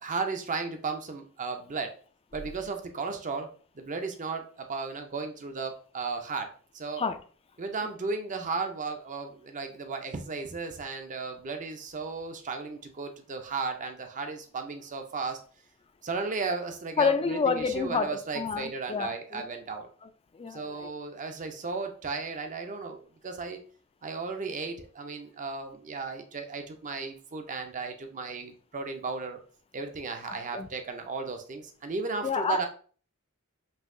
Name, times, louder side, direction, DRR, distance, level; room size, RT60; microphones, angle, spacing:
voice 1, 0.0-1.9 2.3-3.5 3.7-6.5 6.7-7.1 7.6-15.4 16.0-19.9 20.5-23.6 24.0-29.4 29.7-32.7, right 4 dB, 35° right, 6 dB, 0.6 m, -35 dB
voice 2, 17.0-19.5 20.0-20.9 30.5-30.7 32.2-32.6, left 5 dB, 25° left, 9 dB, 0.4 m, -29 dB
5.5 x 2.7 x 2.6 m, 0.41 s
head